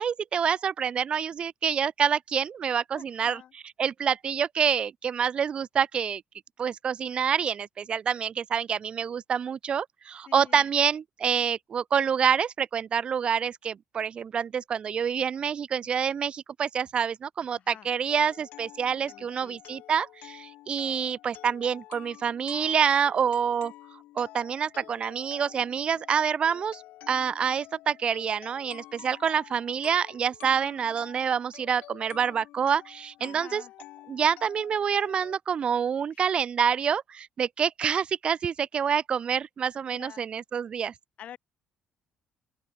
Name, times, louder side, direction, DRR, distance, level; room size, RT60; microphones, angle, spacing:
voice 1, 0.0-3.4 3.8-6.2 6.6-23.7 24.1-26.8 27.1-33.6 34.1-40.9, right 7 dB, 40° right, 0.9 m, -27 dB
voice 2, 2.9-3.5 10.2-10.7 17.5-17.9 18.9-19.6 33.2-33.7 36.1-36.2 39.9-40.3 41.2-41.4, left 10 dB, 55° left, 5.1 m, -48 dB
sound 1, 18.1-35.4, left 16 dB, 85° left, 1.9 m, -49 dB
open air
cardioid pair, 115°, 3 cm